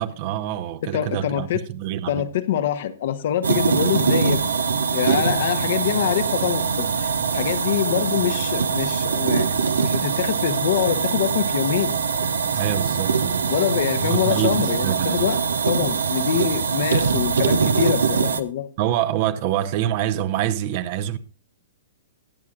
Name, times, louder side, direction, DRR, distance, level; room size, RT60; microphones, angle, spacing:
voice 1, 0.0-2.2 12.5-13.5 14.0-15.2 18.8-21.2, right 11 dB, 45° right, 0.9 m, -26 dB
voice 2, 0.9-1.6 2.1-4.4 4.9-11.9 13.5-15.4 15.7-18.7, left 10 dB, 55° left, 1.0 m, -25 dB
sound 1, 3.4-18.4, right 5 dB, 75° right, 0.9 m, -23 dB
22.5 x 8.4 x 2.5 m
hypercardioid pair, 115°, 0 cm